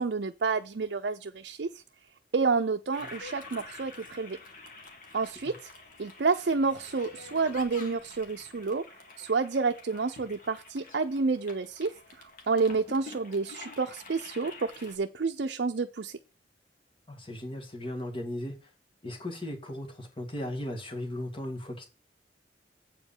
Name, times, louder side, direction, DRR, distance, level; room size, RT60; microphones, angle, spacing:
voice 1, 0.0-1.8 2.3-4.4 5.1-5.7 6.0-8.8 9.2-11.9 12.5-16.2, right 4 dB, 65° right, 6 dB, 0.5 m, -29 dB
Toilet flush, 2.9-15.0, left 3 dB, 50° left, 2.0 m, -48 dB
voice 2, 17.1-18.7 19.0-21.8, left 1 dB, 30° left, 1 dB, 2.0 m, -37 dB
8.3 x 5.1 x 7.1 m, 0.31 s
head